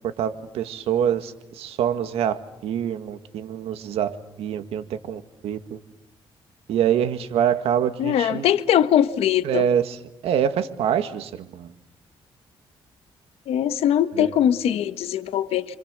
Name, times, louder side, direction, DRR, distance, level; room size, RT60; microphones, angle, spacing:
voice 1, 0.2-5.8 6.7-8.5 9.4-9.9 10.2-11.7 14.2-14.3, right 9 dB, 90° right, 9 dB, 2.0 m, -25 dB
voice 2, 8.0-9.7 13.5-15.8, left 10 dB, 85° left, 12 dB, 1.4 m, -21 dB
29.0 x 26.5 x 6.8 m, 0.82 s
cardioid pair, 115°, 10 cm